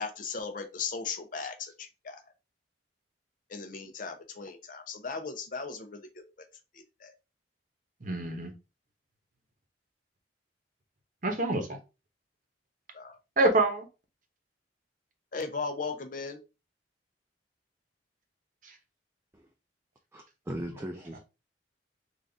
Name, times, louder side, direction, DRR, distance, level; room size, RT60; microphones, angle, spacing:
voice 1, 0.0-2.2 3.5-6.2 6.7-7.1 12.9-13.2 15.3-16.4, left 4 dB, 45° left, 0.6 m, -37 dB
voice 2, 8.0-8.5 11.2-11.8 13.4-13.9 18.6-18.7, right 2 dB, 45° right, 0.9 m, -26 dB
voice 3, 20.1-21.2, right 1 dB, 15° right, 0.4 m, -38 dB
3.9 x 2.4 x 3.3 m
head